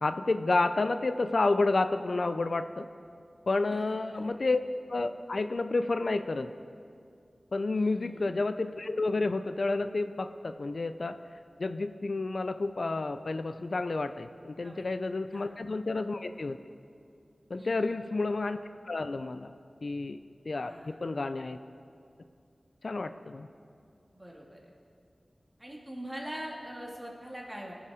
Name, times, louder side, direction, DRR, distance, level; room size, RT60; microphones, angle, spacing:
voice 1, 0.0-2.9 3.5-4.6 4.9-6.5 7.5-11.2 11.6-16.6 17.5-18.6 18.9-19.5 19.8-20.2 20.4-21.6 22.8-23.5, left 3 dB, 65° left, 10 dB, 0.4 m, -30 dB
voice 2, 3.6-4.3 7.7-8.3 14.6-14.9 15.3-15.5 17.5-17.9 20.6-21.0 24.1-24.7 25.6-27.7, equal, 15° right, -2 dB, 2.3 m, -43 dB
18.5 x 7.1 x 4.9 m, 2.4 s
wide cardioid pair, 55°, 0 cm